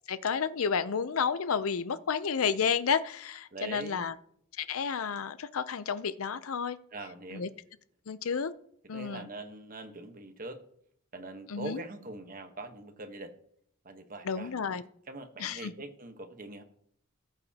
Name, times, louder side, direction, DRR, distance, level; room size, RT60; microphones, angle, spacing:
voice 1, 0.1-4.1 4.6-6.8 7.3-7.5 8.1-8.5 8.9-9.3 11.5-11.8 14.2-14.8 15.4-15.7, left 6 dB, 80° left, 14 dB, 0.6 m, -31 dB
voice 2, 3.5-4.1 6.9-7.5 8.9-10.6 11.1-13.3 13.8-14.5 15.1-16.6, right 2 dB, 40° right, 7 dB, 1.2 m, -42 dB
18.5 x 7.9 x 2.9 m, 0.68 s
head